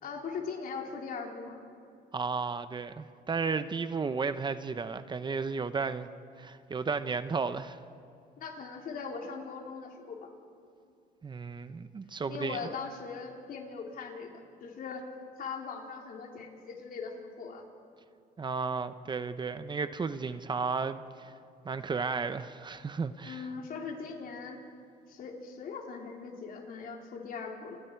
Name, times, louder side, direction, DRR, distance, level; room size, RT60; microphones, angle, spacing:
voice 1, 0.0-1.6 8.4-10.3 12.3-14.3 14.6-17.6 23.2-24.6 25.1-27.8, left 5 dB, 60° left, 3.6 m, -40 dB
voice 2, 2.1-6.1 6.4-7.8 11.2-12.6 18.4-21.3 21.6-23.5, right 4 dB, 25° right, 0.8 m, -33 dB
29.0 x 26.5 x 4.7 m
cardioid pair, 110°, 17 cm